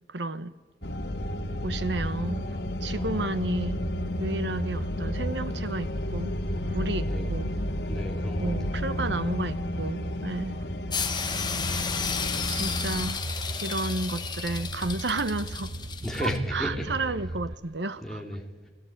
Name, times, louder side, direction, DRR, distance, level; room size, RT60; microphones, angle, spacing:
voice 1, 0.1-0.5 1.6-2.5 2.8-3.8 4.2-6.3 6.7-7.5 8.4-10.6 12.5-13.2 13.6-15.7 16.2-18.2, right 2 dB, 90° right, 1.1 m, -31 dB
sound 1, 0.8-13.1, left 1 dB, 75° left, 1.5 m, -32 dB
sound 2, 0.8-17.5, right 1 dB, 65° right, 0.9 m, -37 dB
voice 2, 2.9-3.4 3.7-3.9 7.0-7.2 7.9-8.5 16.0-16.9 18.0-18.7, equal, 5° left, 3.2 m, -34 dB
sound 3, 10.9-16.4, left 6 dB, 25° left, 1.6 m, -33 dB
30.0 x 18.5 x 9.0 m
head